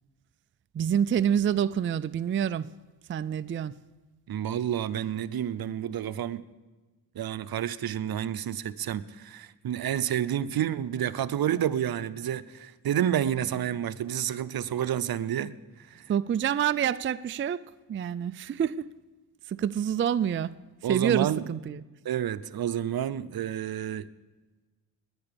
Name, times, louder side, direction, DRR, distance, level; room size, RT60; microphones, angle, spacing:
voice 1, 0.7-2.7 3.1-3.7 16.1-18.9 19.5-20.5 20.9-21.8, right 9 dB, 35° right, 0.4 m, -27 dB
voice 2, 4.3-6.4 7.1-15.5 15.9-16.1 20.8-21.5 22.0-24.1, right 10 dB, 70° right, 0.8 m, -29 dB
20.5 x 9.8 x 6.9 m
cardioid pair, 110°, 38 cm